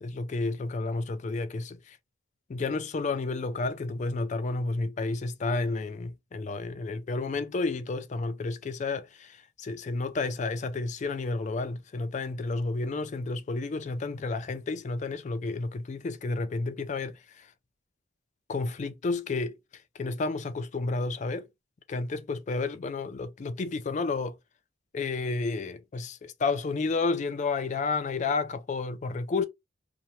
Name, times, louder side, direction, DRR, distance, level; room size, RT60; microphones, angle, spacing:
voice 1, 0.0-2.0 2.5-17.5 18.5-19.6 19.9-21.5 21.9-24.4 24.9-29.5, left 3 dB, 40° left, 0.3 m, -31 dB
2.7 x 2.2 x 3.0 m
head